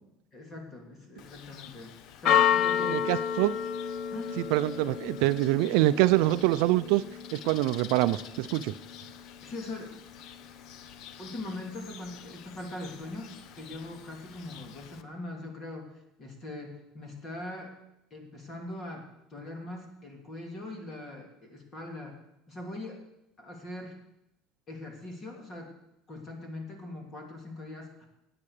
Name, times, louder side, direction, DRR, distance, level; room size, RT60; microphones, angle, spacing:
voice 1, 0.3-3.1 4.1-4.4 4.8-4.9 9.4-9.9 11.2-17.7 18.1-22.2 22.5-23.0 23.4-23.9 24.7-25.7 26.1-28.1, left 2 dB, 25° left, 2 dB, 3.1 m, -41 dB
Church bell, 1.2-15.0, left 8 dB, 45° left, 0.8 m, -33 dB
voice 2, 2.9-3.6 4.4-7.0 7.3-8.7, right 17 dB, 65° right, 13 dB, 0.6 m, -25 dB
18.5 x 8.9 x 6.7 m, 0.88 s
cardioid pair, 170°, 0 cm